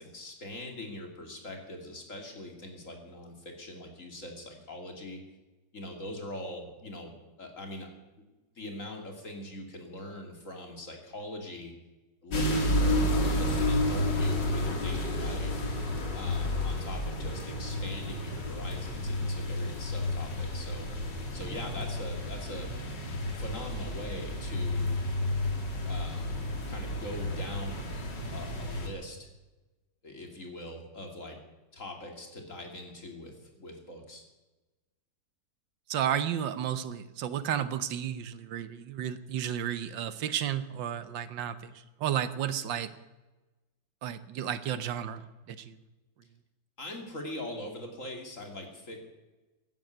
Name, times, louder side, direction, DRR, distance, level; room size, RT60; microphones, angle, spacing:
voice 1, 0.0-5.2 5.7-7.1 7.4-7.9 8.6-11.7 12.2-13.0 13.4-15.7 16.1-20.9 21.3-22.7 23.3-25.0 25.8-29.3 30.0-31.4 31.7-34.2 46.8-49.0, left 1 dB, 45° left, 3 dB, 2.9 m, -42 dB
sound 1, 12.3-28.9, left 1 dB, 70° left, 3.0 m, -31 dB
voice 2, 35.9-41.7 42.0-42.9 44.0-45.8, right 10 dB, 80° right, 13 dB, 1.6 m, -32 dB
16.0 x 11.0 x 8.1 m, 1.1 s
omnidirectional pair, 2.0 m